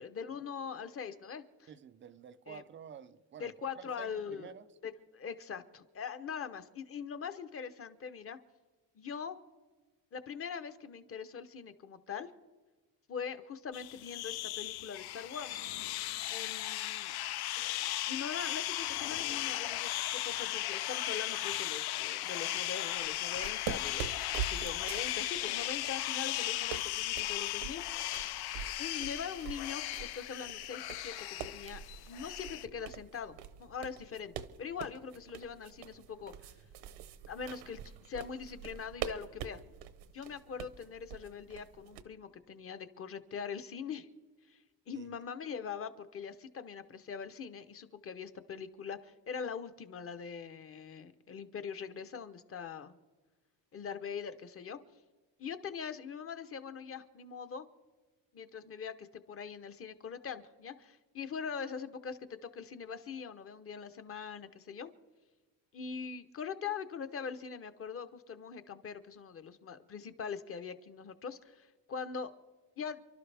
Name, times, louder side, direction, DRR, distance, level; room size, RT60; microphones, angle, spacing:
voice 1, 0.0-1.7 2.5-2.6 3.4-4.5 4.8-8.4 8.9-9.4 10.1-12.3 13.1-15.6 16.3-17.1 18.1-27.8 28.8-31.1 31.4-34.3 34.6-36.3 37.3-39.6 40.1-44.1 44.5-44.6 44.9-53.0 53.7-54.8 55.4-57.7 58.3-64.9 65.7-72.3 72.8-73.0, left 6 dB, 30° left, 0.8 m, -42 dB
voice 2, 1.7-4.7 44.9-45.1, right 8 dB, 30° right, 0.4 m, -50 dB
sound 1, 13.7-32.7, left 15 dB, 65° left, 0.5 m, -36 dB
Barefoot walking footsteps wooden floor, 22.9-42.0, right 9 dB, 85° right, 1.0 m, -45 dB
29.0 x 12.0 x 3.4 m
cardioid pair, 145°, 42 cm